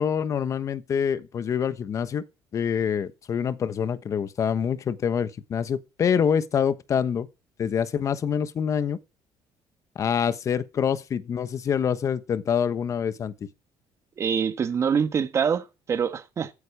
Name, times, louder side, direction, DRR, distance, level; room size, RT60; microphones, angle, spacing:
voice 1, 0.0-2.2 2.5-7.3 7.6-9.0 9.9-13.3, left 7 dB, 40° left, 1.2 m, -26 dB
voice 2, 14.2-16.5, right 7 dB, 35° right, 1.6 m, -25 dB
15.5 x 10.0 x 4.8 m
cardioid pair, 140°, 8 cm